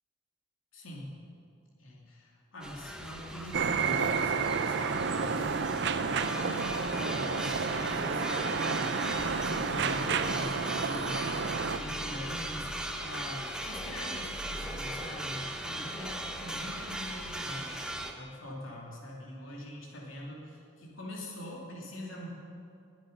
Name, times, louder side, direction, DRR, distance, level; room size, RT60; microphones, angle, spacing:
voice 1, 0.7-1.2 1.8-22.3, left 1 dB, 85° left, -3 dB, 2.8 m, -44 dB
sound 1, 2.6-18.1, right 1 dB, 5° right, 1.0 m, -38 dB
sound 2, 3.5-11.8, right 5 dB, 60° right, 0.7 m, -30 dB
20.5 x 9.1 x 5.5 m, 2.5 s
head